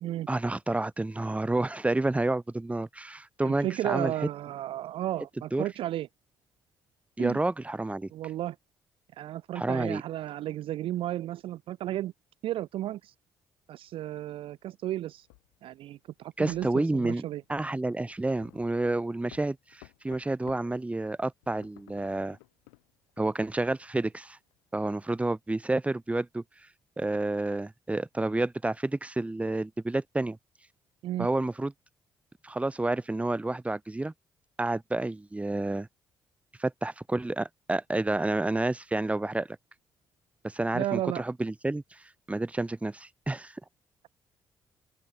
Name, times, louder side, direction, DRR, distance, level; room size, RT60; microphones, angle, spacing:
voice 1, 0.3-4.1 5.5-5.6 7.2-8.1 9.6-10.0 16.4-17.2 17.5-22.4 23.2-24.4 24.7-26.4 27.0-30.4 31.2-31.7 32.4-34.1 34.6-35.9 36.6-39.6 40.4-43.6, right 2 dB, 10° right, 0.7 m, -29 dB
voice 2, 3.4-6.1 7.2-7.4 8.1-8.6 9.2-12.1 12.4-13.1 13.7-15.3 15.6-17.4 31.0-31.3 40.7-41.2, right 13 dB, 55° right, 0.4 m, -33 dB
sound 1, 14.1-20.8 21.1-25.3, left 29 dB, 75° left, 6.4 m, -57 dB
open air
figure-of-eight pair, 40°, 11 cm